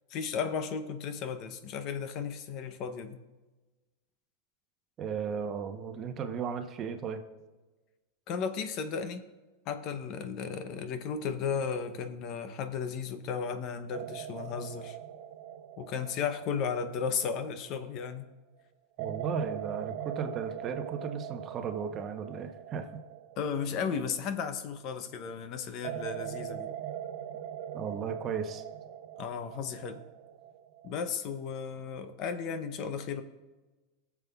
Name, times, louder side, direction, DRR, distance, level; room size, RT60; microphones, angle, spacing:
voice 1, 0.1-3.2 8.3-9.2 9.7-15.0 15.8-18.3 23.4-26.7 29.2-30.0 30.8-33.2, left 6 dB, 40° left, 9 dB, 0.7 m, -34 dB
voice 2, 5.0-7.2 19.0-23.0 27.7-28.6, right 6 dB, 30° right, 7 dB, 0.8 m, -35 dB
sound 1, 13.9-18.1 19.0-25.0 25.8-31.2, right 10 dB, 60° right, 0.6 m, -42 dB
20.5 x 7.1 x 2.4 m, 1.2 s
supercardioid pair, 150°, 0 cm